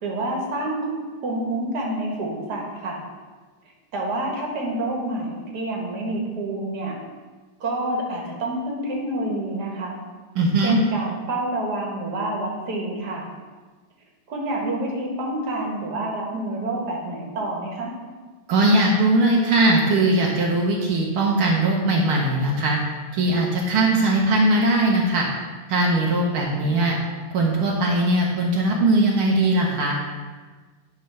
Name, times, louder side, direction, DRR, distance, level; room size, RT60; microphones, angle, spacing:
voice 1, 0.0-0.9 1.2-3.0 3.9-7.0 7.6-10.0 10.6-13.3 14.3-17.9, right 1 dB, 50° right, -1 dB, 1.9 m, -28 dB
voice 2, 10.4-10.8 18.5-22.8 23.1-25.3 25.7-27.0 27.3-29.9, right 2 dB, 75° right, -2 dB, 1.8 m, -20 dB
10.5 x 3.7 x 5.5 m, 1.4 s
omnidirectional pair, 2.4 m